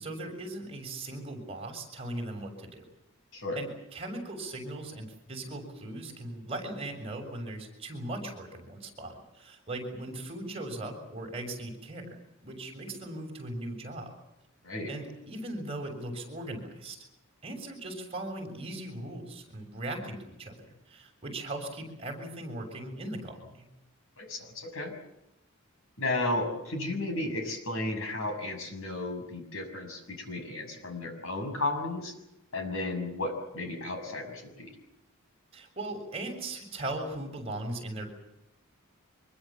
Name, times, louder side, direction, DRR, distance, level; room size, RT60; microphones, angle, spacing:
voice 1, 0.0-2.8 3.5-14.1 14.9-17.0 17.4-23.7 35.5-38.1, right 1 dB, 25° right, 3 dB, 6.7 m, -39 dB
voice 2, 24.2-24.9 26.0-32.1 32.5-34.7, left 2 dB, 60° left, 6 dB, 6.6 m, -34 dB
25.5 x 23.0 x 7.4 m, 0.87 s
head